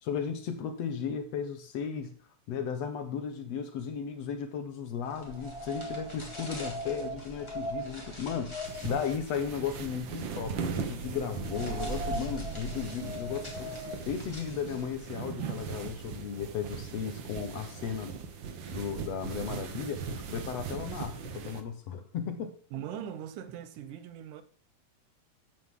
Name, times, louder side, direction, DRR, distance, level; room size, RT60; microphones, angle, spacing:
voice 1, 0.0-2.1 2.5-13.7 14.1-18.2 18.7-22.6, left 7 dB, 65° left, 2.0 m, -35 dB
sound 1, 5.1-15.1, right 1 dB, 10° left, 2.5 m, -40 dB
sound 2, 8.6-21.6, right 6 dB, 60° right, 1.3 m, -39 dB
voice 2, 22.7-24.4, right 9 dB, 85° right, 2.5 m, -40 dB
14.0 x 9.3 x 3.8 m
omnidirectional pair, 3.6 m